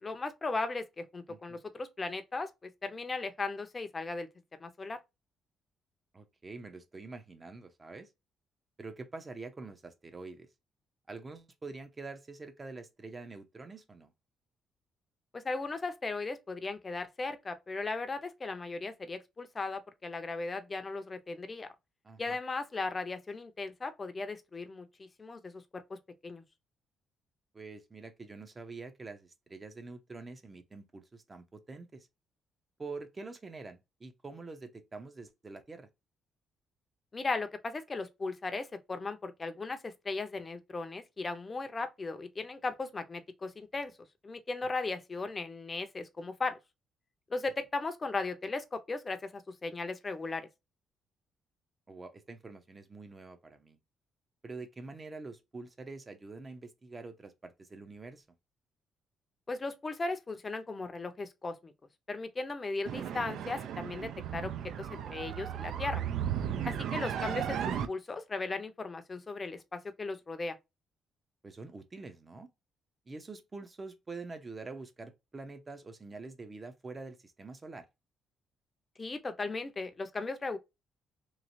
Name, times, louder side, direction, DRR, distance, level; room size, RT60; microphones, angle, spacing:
voice 1, 0.0-4.3 4.6-5.0 15.3-21.7 22.2-26.0 26.2-26.4 37.1-43.9 44.2-46.6 47.3-50.5 59.5-61.7 62.1-66.0 66.6-70.6 79.0-80.6, left 3 dB, 30° left, 0.5 m, -37 dB
voice 2, 1.3-1.6 6.1-8.1 8.8-10.5 11.1-14.1 22.0-22.4 27.5-32.1 32.8-35.9 51.9-53.8 54.4-58.2 66.6-66.8 71.4-72.5 73.1-77.9, right 3 dB, 30° right, 0.6 m, -46 dB
sound 1, 62.9-67.9, right 9 dB, 75° right, 0.4 m, -35 dB
3.0 x 2.4 x 2.6 m
cardioid pair, 90°, 0 cm